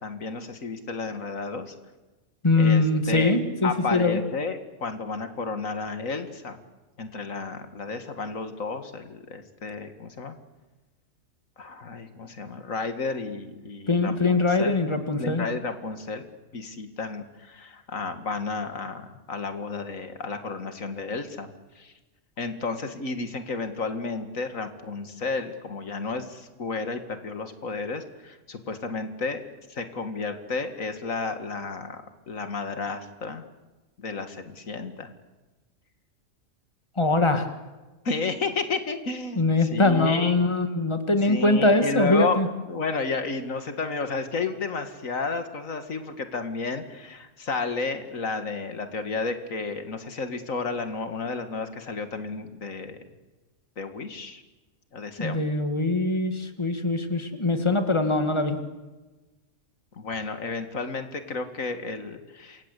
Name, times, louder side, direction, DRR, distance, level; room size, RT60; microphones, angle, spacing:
voice 1, 0.0-1.7 2.6-3.4 3.6-6.6 7.0-10.3 11.6-14.7 15.2-21.9 22.4-29.4 29.7-33.4 34.0-35.1 38.0-40.4 41.3-42.4 42.7-53.0 53.8-54.4 54.9-55.4 59.9-62.7, left 4 dB, 85° left, 8 dB, 2.4 m, -32 dB
voice 2, 2.4-4.2 13.9-15.5 37.0-37.5 39.3-42.5 55.2-58.6, left 2 dB, 20° left, 7 dB, 2.3 m, -22 dB
28.0 x 23.0 x 8.4 m, 1.2 s
omnidirectional pair, 1.4 m